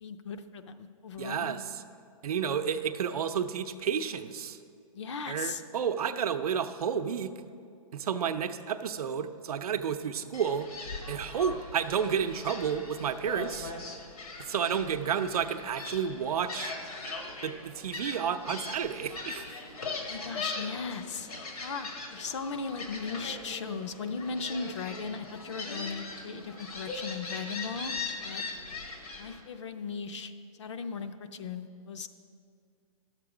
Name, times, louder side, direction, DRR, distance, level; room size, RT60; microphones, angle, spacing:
voice 1, 0.0-1.6 4.9-5.6 20.0-21.3 21.6-27.9 28.2-28.4 29.2-30.3 30.6-32.1, left 5 dB, 55° left, 9 dB, 0.5 m, -37 dB
voice 2, 1.2-1.6 2.2-4.6 5.3-7.3 7.9-10.7 11.1-13.7 14.4-16.7 17.4-19.6, right 7 dB, 85° right, 9 dB, 0.6 m, -31 dB
Gull seagull, 10.3-29.4, left 3 dB, 85° left, 1.7 m, -40 dB
10.5 x 7.4 x 4.9 m, 2.3 s
hypercardioid pair, 175°, 19 cm